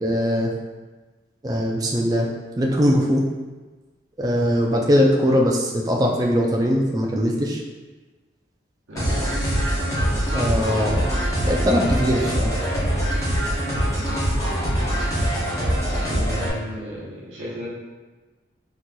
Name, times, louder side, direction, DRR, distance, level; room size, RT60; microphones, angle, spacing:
voice 1, 0.0-0.5 1.4-2.3 2.6-3.2 4.2-7.6 10.3-11.0 11.5-12.5, equal, 20° right, -2 dB, 0.3 m, -21 dB
voice 2, 8.9-9.6 16.1-17.7, equal, 90° right, -7 dB, 0.9 m, -35 dB
sound 1, 9.0-16.5, equal, 15° left, 0.8 m, -23 dB
4.0 x 3.0 x 2.2 m, 1.3 s
head